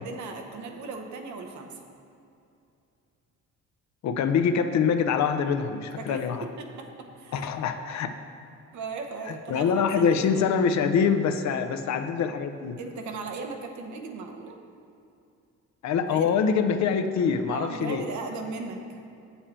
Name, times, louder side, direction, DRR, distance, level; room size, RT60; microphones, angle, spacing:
voice 1, 0.0-1.8 6.0-7.5 8.7-10.5 12.8-14.6 16.1-16.3 17.5-19.0, right 4 dB, 70° right, 4 dB, 0.9 m, -37 dB
voice 2, 4.0-6.5 7.3-8.1 9.3-12.8 15.8-18.0, left 6 dB, 65° left, 8 dB, 0.6 m, -25 dB
7.3 x 7.1 x 4.3 m, 2.6 s
cardioid pair, 90°, 30 cm